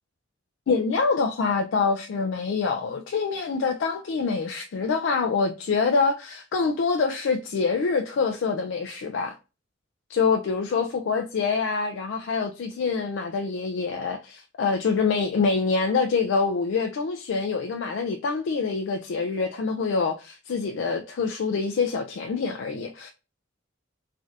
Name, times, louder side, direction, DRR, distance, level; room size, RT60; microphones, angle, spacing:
voice 1, 0.7-9.4 10.1-23.1, left 4 dB, 65° left, 0.3 m, -25 dB
3.2 x 2.4 x 2.6 m
head